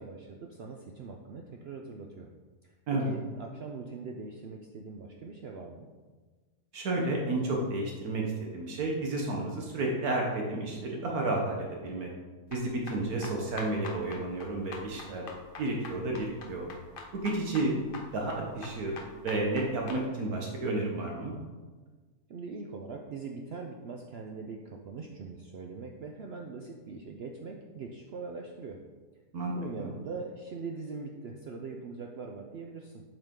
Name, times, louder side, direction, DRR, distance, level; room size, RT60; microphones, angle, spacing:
voice 1, 0.0-2.3 2.6-5.9 22.3-28.8 29.5-33.0, right 4 dB, 85° right, 2 dB, 0.5 m, -42 dB
voice 2, 6.7-12.1 12.5-15.2 15.6-16.7 17.1-17.7 18.1-19.0 19.2-21.3 29.3-30.0, right 2 dB, 65° right, -1 dB, 1.4 m, -31 dB
sound 1, 12.5-20.0, left 3 dB, 45° left, 0.8 m, -45 dB
7.6 x 4.8 x 3.7 m, 1.3 s
omnidirectional pair, 1.7 m